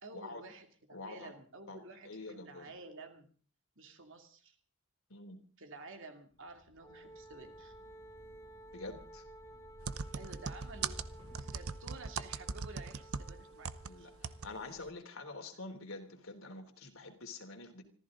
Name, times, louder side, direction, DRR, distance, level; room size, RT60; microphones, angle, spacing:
voice 1, 0.0-3.3 3.8-4.6 5.6-7.7 10.1-11.0 11.4-14.1, right 3 dB, 60° right, 5 dB, 2.7 m, -51 dB
voice 2, 0.9-1.3 1.7-2.7 5.1-5.4 8.7-9.2 13.8-17.8, left 3 dB, 70° left, 4 dB, 3.4 m, -47 dB
sound 1, 6.5-13.2, equal, 30° right, 5.8 m, -56 dB
Wind instrument woodwind instrument, 6.8-14.8, right 1 dB, 15° left, 1.2 m, -55 dB
sound 2, 9.9-13.9 14.2-14.5 14.8-14.9, right 5 dB, 80° right, 0.9 m, -39 dB
25.0 x 14.5 x 3.9 m, 0.41 s
head